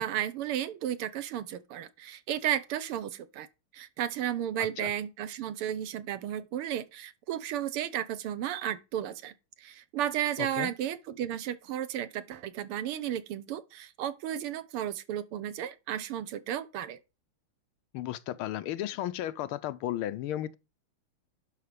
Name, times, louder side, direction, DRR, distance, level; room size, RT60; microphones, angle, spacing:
voice 1, 0.0-3.5 3.7-17.0, right 11 dB, 85° right, 1.9 m, -33 dB
voice 2, 10.4-10.7 17.9-20.6, left 12 dB, 80° left, 1.5 m, -34 dB
11.0 x 5.8 x 5.0 m
omnidirectional pair, 2.4 m